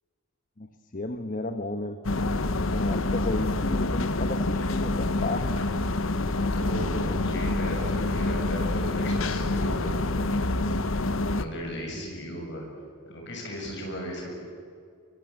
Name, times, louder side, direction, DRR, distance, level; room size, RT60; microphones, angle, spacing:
voice 1, 0.6-2.4 2.7-5.6 6.7-7.2 11.9-12.2, left 2 dB, 40° left, 8 dB, 1.1 m, -34 dB
sound 1, 2.0-11.4, left 2 dB, 70° left, 1.1 m, -27 dB
voice 2, 6.5-9.9 11.3-12.7 13.1-14.3, equal, 55° left, 1 dB, 7.3 m, -36 dB
24.0 x 23.0 x 8.6 m, 2.3 s
head